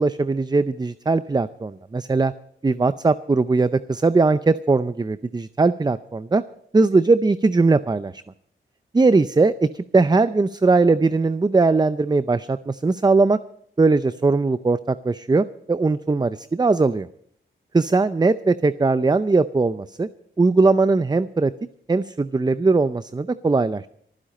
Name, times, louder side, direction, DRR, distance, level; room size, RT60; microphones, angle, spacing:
voice 1, 0.0-2.3 2.6-6.4 6.7-8.2 8.9-13.4 13.8-17.1 17.7-20.1 20.4-21.5 21.9-23.9, right 3 dB, 20° right, 13 dB, 0.5 m, -20 dB
24.5 x 10.0 x 4.2 m, 0.65 s
cardioid pair, 80°, 21 cm